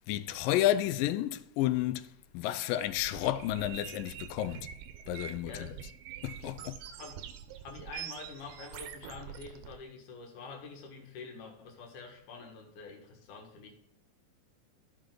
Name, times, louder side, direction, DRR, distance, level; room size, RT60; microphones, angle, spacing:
voice 1, 0.1-2.1 2.3-4.7 5.1-5.7 6.2-6.8, left 13 dB, 90° left, 2.3 m, -31 dB
sound 1, 2.7-9.7, right 10 dB, 90° right, 2.4 m, -45 dB
voice 2, 5.4-5.8 6.6-7.3 7.6-13.7, left 4 dB, 70° left, 3.0 m, -47 dB
14.5 x 5.3 x 3.8 m
omnidirectional pair, 3.9 m